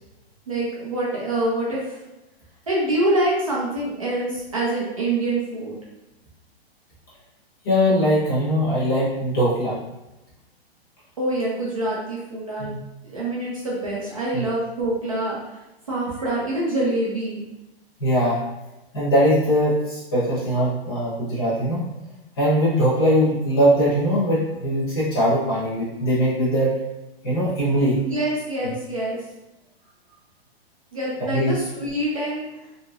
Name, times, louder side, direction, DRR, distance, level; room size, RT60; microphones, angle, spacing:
voice 1, 0.5-2.0 2.7-5.8 11.2-12.7 13.0-15.4 15.9-17.4 28.0-29.2 30.9-32.4, right 1 dB, 35° right, -6 dB, 0.4 m, -25 dB
voice 2, 7.6-9.8 12.6-12.8 14.3-14.4 18.0-18.4 18.9-21.9 22.4-26.7 27.2-28.0 28.6-28.7 31.3-31.6, equal, 25° left, -8 dB, 0.8 m, -21 dB
2.8 x 2.8 x 2.3 m, 0.97 s
hypercardioid pair, 180°, 32 cm